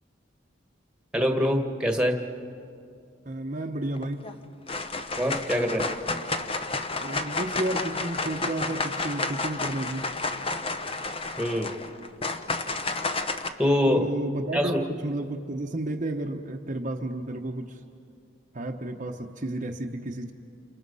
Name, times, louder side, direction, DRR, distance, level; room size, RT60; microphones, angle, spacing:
voice 1, 1.1-2.2 5.2-5.8 11.4-11.7 13.6-14.1 14.5-14.8, equal, 5° right, 4 dB, 1.7 m, -24 dB
voice 2, 3.2-4.3 7.0-10.1 13.9-17.8 18.5-20.3, right 1 dB, 40° right, 2 dB, 1.0 m, -32 dB
sound 1, 4.0-4.3 4.7-13.5, left 3 dB, 30° left, 1.0 m, -31 dB
29.5 x 29.0 x 5.6 m, 2.4 s
head